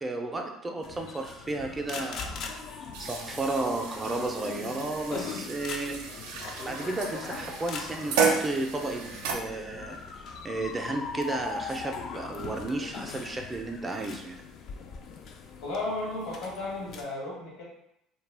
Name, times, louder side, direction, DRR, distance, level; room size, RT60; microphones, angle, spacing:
voice 1, 0.0-2.7 3.0-6.1 6.7-10.0 10.4-14.4, right 2 dB, 20° right, 2 dB, 0.4 m, -33 dB
sound 1, 0.8-17.0, left 5 dB, 55° left, 0.3 m, -40 dB
sound 2, 2.9-9.3, right 5 dB, 85° right, 0.4 m, -33 dB
voice 2, 15.6-17.6, left 2 dB, 75° left, -4 dB, 1.1 m, -34 dB
2.3 x 2.1 x 3.3 m, 0.80 s
supercardioid pair, 90°, 0 cm